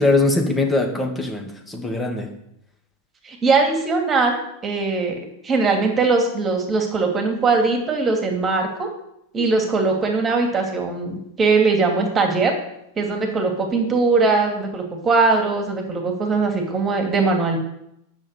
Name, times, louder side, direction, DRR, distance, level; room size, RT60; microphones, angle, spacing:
voice 1, 0.0-2.3, left 2 dB, 10° left, 3 dB, 2.6 m, -21 dB
voice 2, 3.2-5.2 5.4-8.9 9.3-12.5 13.0-17.6, right 4 dB, 20° right, 3 dB, 2.8 m, -20 dB
10.5 x 7.4 x 8.4 m, 0.78 s
figure-of-eight pair, 90°, 0 cm